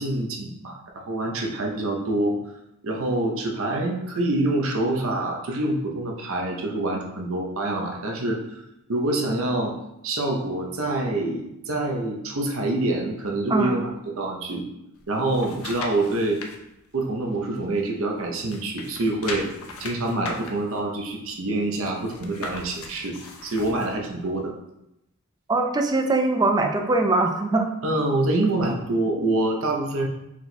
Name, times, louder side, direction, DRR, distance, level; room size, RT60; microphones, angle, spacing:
voice 1, 0.0-2.4 2.8-8.6 8.9-9.7 10.0-13.9 14.2-14.6 15.1-16.4 16.9-19.5 19.8-24.5 27.8-30.1, right 2 dB, 70° right, 1 dB, 0.7 m, -26 dB
sound 1, 14.9-16.6 17.0-18.1 18.4-24.0 24.4-24.5, left 3 dB, 80° left, 0.6 m, -38 dB
voice 2, 25.5-27.7, right 2 dB, 20° right, 4 dB, 0.3 m, -22 dB
4.5 x 2.2 x 4.1 m, 0.85 s
head